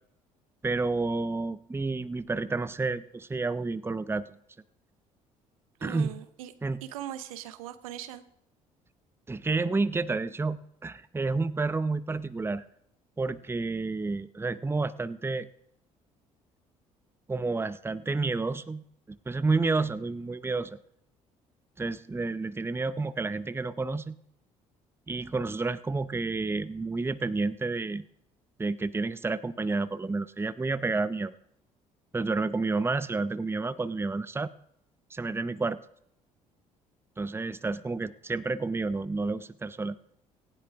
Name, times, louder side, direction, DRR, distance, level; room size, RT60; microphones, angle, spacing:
voice 1, 0.6-4.3 5.8-6.1 6.6-6.8 9.3-12.6 13.2-15.5 17.3-20.8 21.8-24.2 25.1-28.0 28.6-31.3 32.1-34.5 35.1-35.8 37.2-40.0, right 3 dB, 15° right, 15 dB, 0.7 m, -30 dB
voice 2, 5.8-6.5 6.8-8.2, right 11 dB, 75° right, 13 dB, 0.9 m, -40 dB
18.0 x 15.5 x 3.6 m, 0.73 s
figure-of-eight pair, 50°, 18 cm